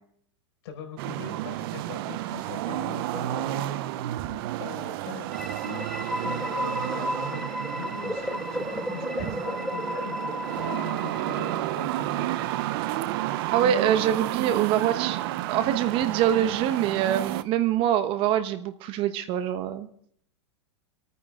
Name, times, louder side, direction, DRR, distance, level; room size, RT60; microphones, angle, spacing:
voice 1, 0.6-3.8 4.6-5.9 6.2-7.5 7.8-12.3, left 7 dB, 60° left, 4 dB, 4.8 m, -41 dB
sound 1, 1.0-17.4, right 15 dB, 55° right, 0.7 m, -31 dB
sound 2, 5.3-12.1, left 1 dB, ahead, 0.5 m, -33 dB
voice 2, 13.5-15.2 15.5-19.9, right 10 dB, 35° right, 11 dB, 1.1 m, -24 dB
26.0 x 9.4 x 3.7 m, 0.64 s
supercardioid pair, 140°, 15 cm